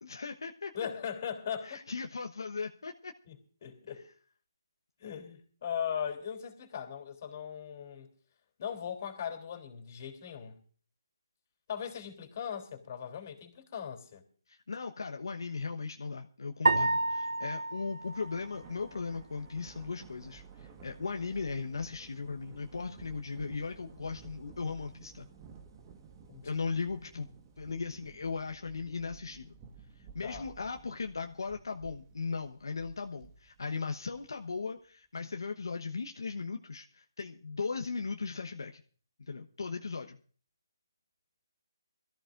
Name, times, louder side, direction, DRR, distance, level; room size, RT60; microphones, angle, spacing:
voice 1, 0.0-0.7 1.6-3.1 14.5-25.3 26.4-27.3 27.6-29.5 30.0-38.8 39.2-40.2, left 4 dB, 75° left, 1.2 m, -37 dB
voice 2, 0.7-1.8 3.3-3.4 3.6-4.1 5.0-8.1 8.6-10.6 11.7-14.2 26.3-26.5 30.2-30.4, left 8 dB, 40° left, 3.3 m, -39 dB
sound 1, 16.7-19.1, right 2 dB, 85° right, 0.9 m, -30 dB
Thunder, 18.0-34.6, right 6 dB, 20° right, 1.5 m, -54 dB
24.0 x 14.0 x 2.6 m
hypercardioid pair, 155°, 2 cm